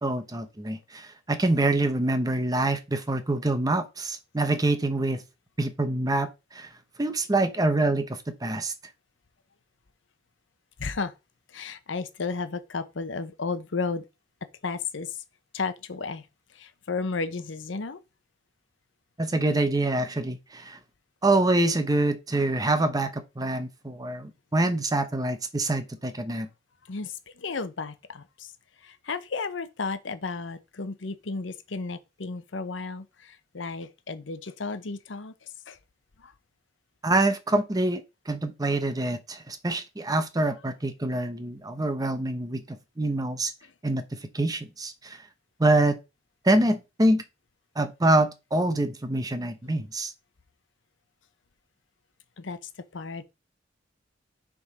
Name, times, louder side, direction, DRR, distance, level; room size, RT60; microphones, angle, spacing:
voice 1, 0.0-5.2 5.6-6.7 7.0-8.7 19.2-20.8 21.2-26.5 37.0-43.5 43.8-44.0 44.3-45.2 45.6-46.0 46.4-47.2 47.8-50.1, right 2 dB, 20° right, 0.8 m, -25 dB
voice 2, 10.8-11.1 11.5-14.0 14.6-15.2 15.5-16.3 16.5-18.0 26.9-28.5 28.8-35.8 36.2-36.3 43.6-43.7 52.4-53.2, left 4 dB, 75° left, 0.8 m, -33 dB
6.9 x 3.7 x 4.9 m
head